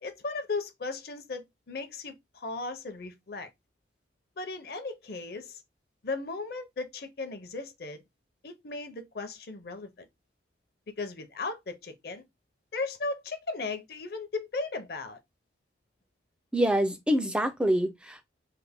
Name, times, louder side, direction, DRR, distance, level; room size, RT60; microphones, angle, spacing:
voice 1, 0.0-3.5 4.4-5.6 6.0-8.0 8.4-10.1 11.0-12.2 12.7-15.2, left 3 dB, 55° left, 0.6 m, -36 dB
voice 2, 16.5-18.2, equal, 5° right, 0.4 m, -26 dB
3.3 x 2.1 x 3.4 m
head